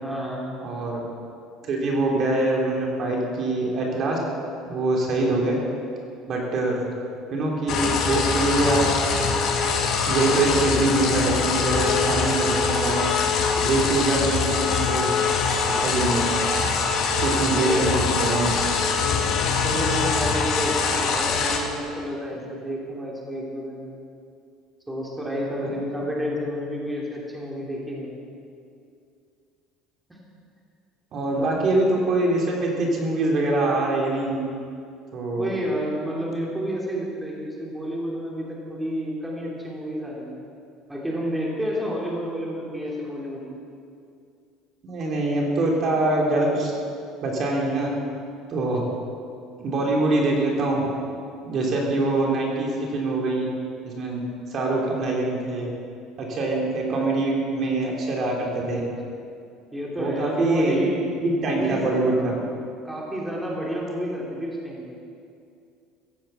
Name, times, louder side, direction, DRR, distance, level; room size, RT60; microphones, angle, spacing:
voice 1, 0.0-0.5 17.5-18.0 19.0-23.9 24.9-28.1 31.4-31.5 35.4-40.4 40.9-43.5 59.7-61.0 61.4-62.4 62.8-65.0, equal, 10° right, -4 dB, 3.1 m, -30 dB
voice 2, 0.6-1.0 1.6-4.2 4.7-5.6 6.3-6.9 7.3-8.8 10.1-13.1 13.6-15.1 15.7-16.4 17.2-18.5 31.1-34.5 35.1-35.5 44.8-46.7 47.2-47.9 48.5-48.8 49.6-50.9 51.4-53.5 53.8-54.2 54.5-55.7 56.2-58.8 60.0-60.9 61.2-62.3, right 2 dB, 45° right, -2 dB, 3.3 m, -24 dB
sound 1, 7.7-21.6, left 4 dB, 55° left, 2.4 m, -23 dB
16.0 x 10.5 x 7.9 m, 2.4 s
cardioid pair, 135°, 0 cm